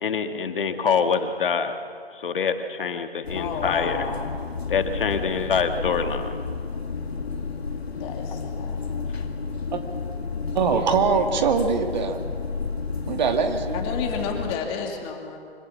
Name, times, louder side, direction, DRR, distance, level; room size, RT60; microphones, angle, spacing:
voice 1, 0.0-1.8 2.1-4.0 4.7-6.3, left 6 dB, 55° left, 7 dB, 1.7 m, -25 dB
sound 1, 3.2-14.6, left 4 dB, 75° left, 2.1 m, -31 dB
voice 2, 3.3-4.4 7.9-8.9 13.7-15.4, left 6 dB, 20° left, 2 dB, 2.4 m, -31 dB
voice 3, 10.5-12.2 13.1-13.8, right 5 dB, 45° right, 6 dB, 2.0 m, -22 dB
24.5 x 16.5 x 7.2 m, 2.2 s
hypercardioid pair, 150°, 32 cm